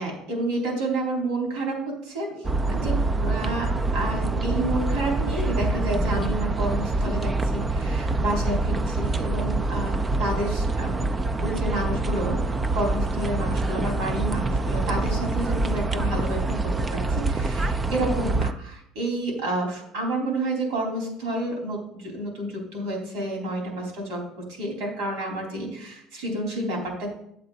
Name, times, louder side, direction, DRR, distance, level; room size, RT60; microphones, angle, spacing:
voice 1, 0.0-11.1 11.4-12.4 12.7-24.2 24.5-27.1, right 1 dB, 85° right, -1 dB, 3.7 m, -30 dB
sound 1, 2.4-18.5, right 2 dB, 15° right, 0.3 m, -25 dB
9.1 x 7.9 x 3.9 m, 0.74 s
cardioid pair, 165°, 0 cm